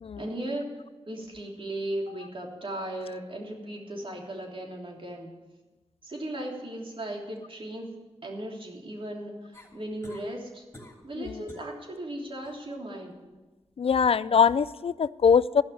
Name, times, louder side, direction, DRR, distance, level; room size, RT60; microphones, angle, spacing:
voice 1, 0.2-0.8 1.1-5.3 6.0-7.9 8.2-10.6 11.0-13.2, right 1 dB, 50° right, -1 dB, 3.2 m, -36 dB
sound 1, 9.5-10.3 10.7-11.1 11.5-11.7 12.2-12.6 14.4-14.5, left 1 dB, 20° left, 2.8 m, -49 dB
voice 2, 13.8-15.6, left 6 dB, 55° left, 18 dB, 0.4 m, -22 dB
13.5 x 5.8 x 9.3 m, 1.2 s
cardioid pair, 55°, 12 cm